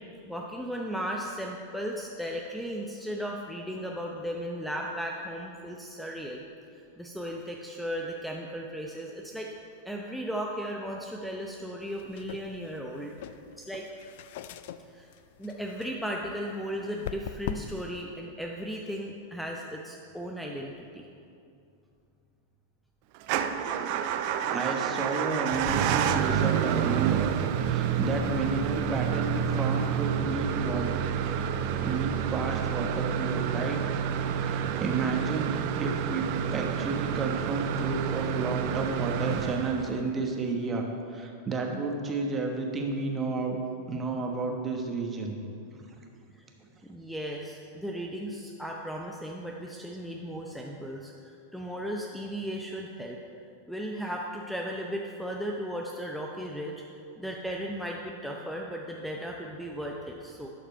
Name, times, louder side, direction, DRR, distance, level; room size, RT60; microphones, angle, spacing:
voice 1, 0.2-6.4 7.0-9.5 9.8-13.1 13.6-13.9 14.9-15.1 15.4-21.1 46.3-46.4 46.8-53.2 53.7-56.8 57.2-60.5, equal, ahead, -1 dB, 0.7 m, -36 dB
sound 1, 11.8-17.9, left 10 dB, 60° left, 0.4 m, -42 dB
Motor vehicle (road) / Engine starting / Idling, 23.2-40.2, right 8 dB, 55° right, 0.5 m, -29 dB
voice 2, 24.4-27.3 27.6-30.9 31.8-33.8 34.3-43.6 43.9-45.4 45.7-45.9, right 3 dB, 25° right, 2 dB, 1.2 m, -31 dB
11.5 x 4.9 x 4.5 m, 2.5 s
hypercardioid pair, 100°, 0 cm